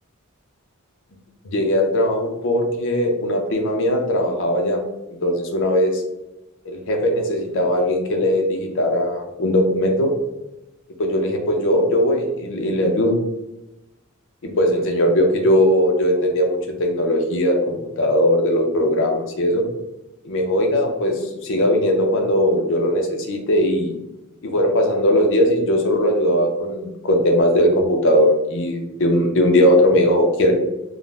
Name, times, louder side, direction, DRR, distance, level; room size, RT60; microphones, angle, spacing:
voice 1, 1.4-4.8 5.2-6.0 6.7-10.1 11.0-13.1 14.4-19.6 20.2-23.9 24.4-30.5, equal, 65° left, 2 dB, 0.5 m, -19 dB
2.4 x 2.0 x 3.1 m, 0.94 s
head